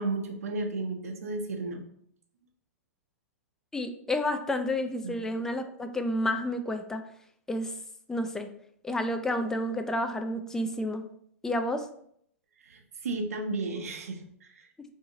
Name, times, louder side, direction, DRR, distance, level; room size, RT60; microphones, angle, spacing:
voice 1, 0.0-1.8 5.0-5.2 12.6-14.7, right 3 dB, 75° right, 3 dB, 0.7 m, -33 dB
voice 2, 3.7-7.0 7.5-7.7 8.1-8.5 8.8-11.0 11.4-11.9, left 1 dB, 5° left, 7 dB, 0.3 m, -30 dB
2.8 x 2.7 x 3.7 m, 0.68 s
hypercardioid pair, 110°, 8 cm